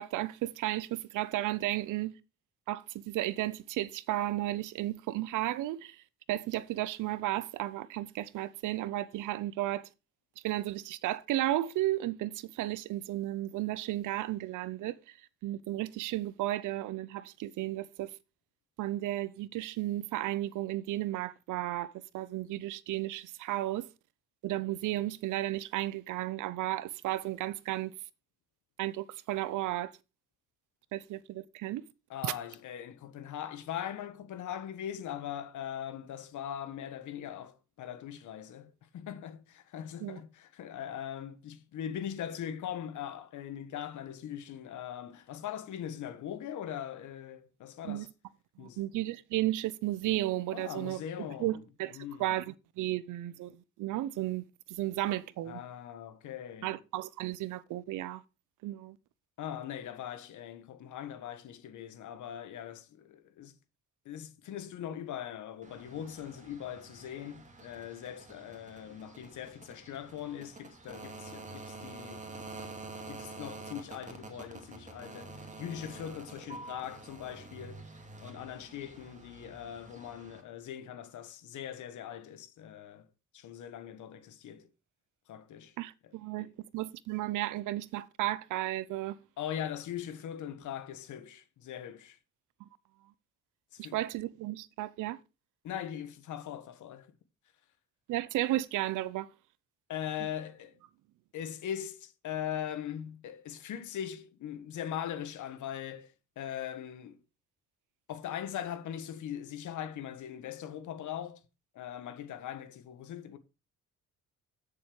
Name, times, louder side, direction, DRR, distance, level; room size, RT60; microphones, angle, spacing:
voice 1, 0.0-2.1 2.7-6.0 6.3-9.9 10.4-15.0 15.4-18.1 18.8-23.9 24.4-27.9 28.8-29.9 30.9-31.8 32.2-32.3 40.0-40.2 47.8-48.1 48.6-51.0 51.4-51.9 52.2-55.6 56.6-58.2 58.6-59.0 85.8-86.5 86.7-89.2 93.8-95.2 98.1-99.3, right 15 dB, 85° right, 0.7 m, -34 dB
voice 2, 32.1-48.1 48.6-48.9 50.5-51.6 51.9-52.4 55.4-56.8 59.4-63.6 64.0-72.6 73.0-77.8 78.2-83.1 83.3-84.7 85.3-85.7 86.0-86.5 89.4-92.2 93.7-94.0 95.6-97.1 99.9-100.8 101.3-107.2 108.1-111.4 111.7-113.4, left 10 dB, 75° left, 1.4 m, -41 dB
sound 1, 65.6-80.4, right 3 dB, 25° right, 2.3 m, -48 dB
8.7 x 7.0 x 4.6 m
cardioid pair, 90°, 30 cm